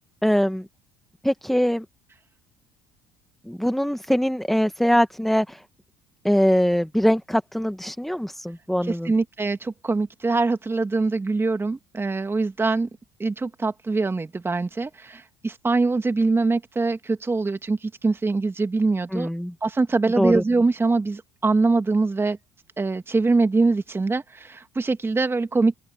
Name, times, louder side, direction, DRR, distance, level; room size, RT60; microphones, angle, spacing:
voice 1, 0.2-0.7 1.2-1.8 3.5-5.6 6.2-9.1 19.1-19.5 20.2-20.4, equal, ahead, 2.1 m, -22 dB
voice 2, 8.8-12.9 13.2-19.3 19.6-22.4 22.8-25.7, right 3 dB, 20° right, 2.0 m, -23 dB
open air
figure-of-eight pair, 60°, 13 cm